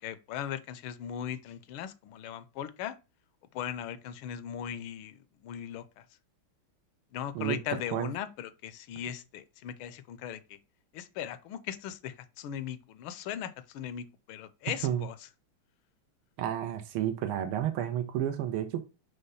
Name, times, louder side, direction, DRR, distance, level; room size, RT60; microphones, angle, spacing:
voice 1, 0.0-3.0 3.5-6.0 7.1-10.6 10.9-15.2, left 9 dB, 80° left, 1.4 m, -38 dB
voice 2, 16.4-18.8, right 11 dB, 90° right, 1.6 m, -31 dB
5.5 x 3.3 x 5.5 m
omnidirectional pair, 2.3 m